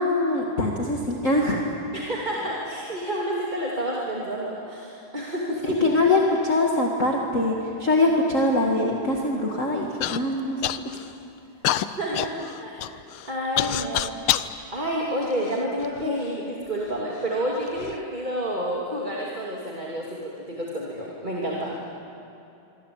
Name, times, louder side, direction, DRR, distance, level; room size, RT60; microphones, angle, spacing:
voice 1, 0.0-1.8 5.6-11.0, left 2 dB, 40° left, 0 dB, 2.2 m, -23 dB
voice 2, 1.9-5.8 12.0-12.3 12.6-12.8 13.3-14.2 14.7-21.8, equal, 20° right, -4 dB, 2.9 m, -29 dB
Human voice / Cough, 10.0-10.2 10.6-11.1 11.6-14.5 15.2-16.1 16.8-16.9 17.6-18.0, left 12 dB, 85° left, 1.6 m, -27 dB
25.5 x 24.5 x 8.8 m, 2.8 s
omnidirectional pair, 2.3 m